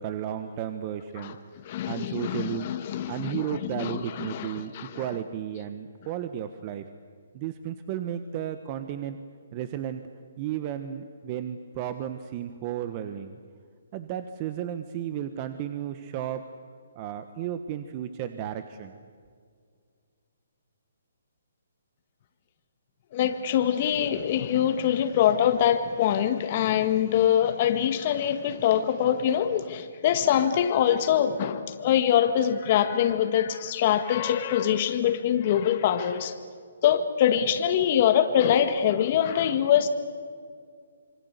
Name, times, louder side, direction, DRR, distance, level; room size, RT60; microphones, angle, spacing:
voice 1, 0.0-1.4 1.9-2.7 3.1-6.8 7.3-9.2 9.5-10.1 10.4-13.4 13.9-16.4 16.9-18.9, right 10 dB, 35° right, 10 dB, 1.2 m, -33 dB
voice 2, 1.7-5.0 23.1-36.3 36.8-39.9, left 10 dB, 40° left, 8 dB, 1.7 m, -24 dB
27.0 x 24.0 x 8.3 m, 2.1 s
hypercardioid pair, 145°, 0 cm